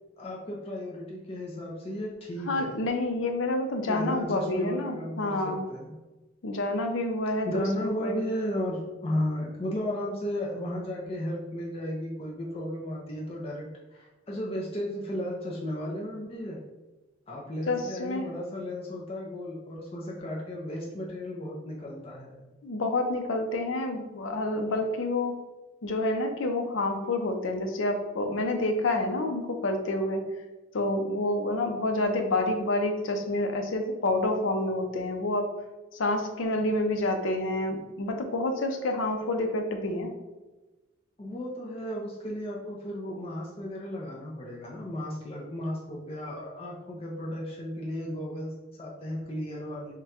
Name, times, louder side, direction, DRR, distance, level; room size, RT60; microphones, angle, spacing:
voice 1, 0.2-2.8 3.9-6.0 7.4-16.6 17.3-22.5 41.2-49.9, left 1 dB, 30° left, -2 dB, 0.5 m, -34 dB
voice 2, 2.5-5.7 6.4-8.2 17.7-18.3 22.6-25.4 25.8-30.2 30.7-35.5 35.9-40.1, left 2 dB, 85° left, 5 dB, 0.6 m, -28 dB
3.6 x 2.2 x 4.2 m, 1.1 s
head